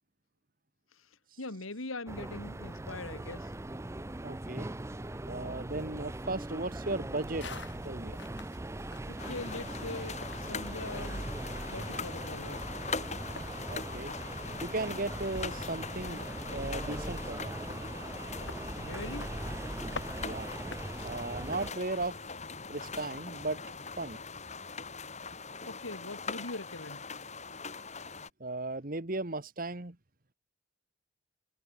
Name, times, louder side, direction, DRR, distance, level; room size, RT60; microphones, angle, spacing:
voice 1, 0.9-3.5 9.1-11.3 11.7-12.7 18.8-19.4 25.7-27.0, left 2 dB, 80° left, 2.8 m, -42 dB
sound 1, 2.1-21.7, right 1 dB, 15° right, 0.5 m, -40 dB
voice 2, 4.2-4.7 5.3-7.5 7.8-8.1 13.7-14.1 14.6-17.5 20.2-20.5 21.0-22.2 22.7-23.6 24.0-24.2 28.4-30.0, right 2 dB, 40° right, 1.4 m, -36 dB
sound 2, 7.4-23.9, left 2 dB, 55° left, 7.1 m, -49 dB
sound 3, 9.2-28.3, left 4 dB, 35° left, 5.3 m, -42 dB
head